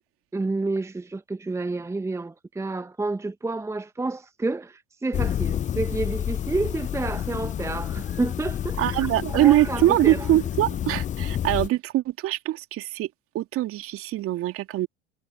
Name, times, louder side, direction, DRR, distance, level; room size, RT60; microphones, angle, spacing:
voice 1, 0.3-10.4, right 3 dB, 10° right, 1.3 m, -30 dB
sound 1, 5.1-11.7, left 10 dB, 20° left, 0.7 m, -29 dB
voice 2, 8.8-13.1 13.3-14.9, right 15 dB, 40° right, 3.0 m, -23 dB
figure-of-eight pair, 75°, 34 cm